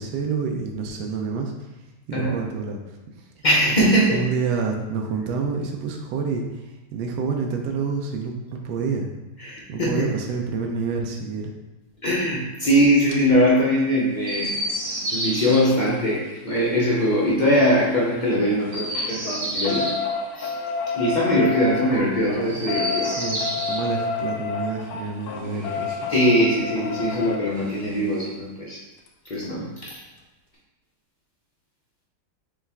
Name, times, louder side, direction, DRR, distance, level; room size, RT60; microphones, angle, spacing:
voice 1, 0.0-1.5 2.1-2.8 4.1-9.1 9.7-11.5 23.0-26.1, right 5 dB, 80° right, 2 dB, 1.2 m, -28 dB
voice 2, 3.4-4.2 9.4-10.1 12.0-14.5 15.1-19.9 20.4-20.5 20.9-23.1 26.1-28.8 29.3-29.9, equal, 55° left, -6 dB, 0.5 m, -21 dB
sound 1, 13.1-13.2 14.8-18.4 18.7-27.4 29.1-29.2 29.4-29.5 29.8-29.9, left 4 dB, 75° left, 1.0 m, -31 dB
Chirp tweet, 14.2-15.6 18.6-20.0 22.4-23.8 25.3-26.3 27.4-28.3, right 1 dB, 60° right, 1.5 m, -30 dB
5.2 x 2.4 x 3.4 m, 1.0 s
omnidirectional pair, 1.8 m